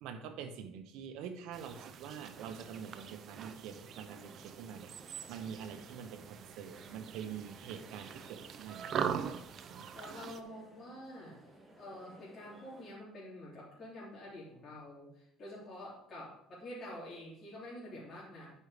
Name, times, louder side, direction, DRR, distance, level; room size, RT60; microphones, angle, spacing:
voice 1, 0.0-9.1 9.7-9.9, right 7 dB, 75° right, 8 dB, 1.2 m, -46 dB
sound 1, 1.5-10.4, right 8 dB, 45° right, 0.7 m, -42 dB
sound 2, 2.3-13.0, right 1 dB, 15° right, 1.7 m, -59 dB
voice 2, 9.9-11.4 11.8-18.5, left 1 dB, 35° left, -7 dB, 3.4 m, -47 dB
9.8 x 5.6 x 5.1 m, 0.74 s
cardioid pair, 125°, 0 cm